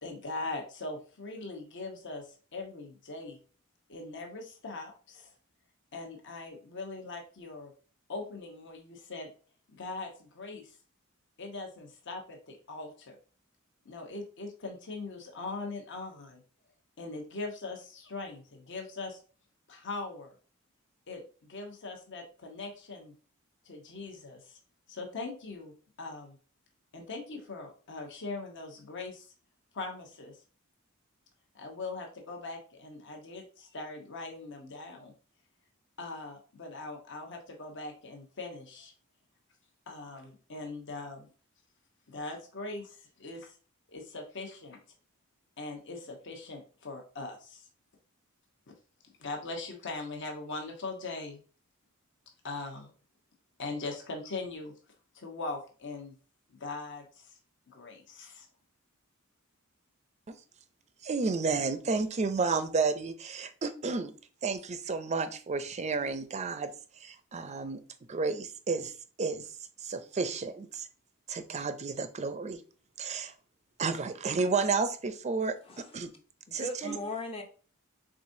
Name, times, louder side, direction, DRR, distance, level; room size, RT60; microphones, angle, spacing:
voice 1, 0.0-3.4 3.9-5.3 5.9-7.7 8.1-9.3 9.7-10.8 11.4-13.2 13.8-16.4 17.0-19.2 19.7-20.4 21.1-21.2 21.5-23.1 23.6-24.6 24.9-25.7 26.0-26.4 26.9-29.3 29.7-30.4 31.5-35.1 36.0-38.9 39.9-41.3 42.1-43.5 43.9-44.8 45.6-47.7 49.2-51.4 52.4-52.9 53.6-54.7 55.1-56.2 56.6-57.3 57.7-58.5, left 3 dB, 60° left, 2 dB, 1.0 m, -41 dB
voice 2, 61.0-64.1 64.4-66.7 67.0-67.8 68.1-68.9 69.2-69.4 69.8-70.9 71.3-72.6 73.0-73.3 73.8-76.1 76.5-77.0, right 4 dB, 35° right, 11 dB, 0.5 m, -31 dB
voice 3, 75.6-76.0 76.5-77.4, left 2 dB, 25° left, 4 dB, 0.6 m, -38 dB
4.8 x 3.6 x 2.6 m, 0.38 s
head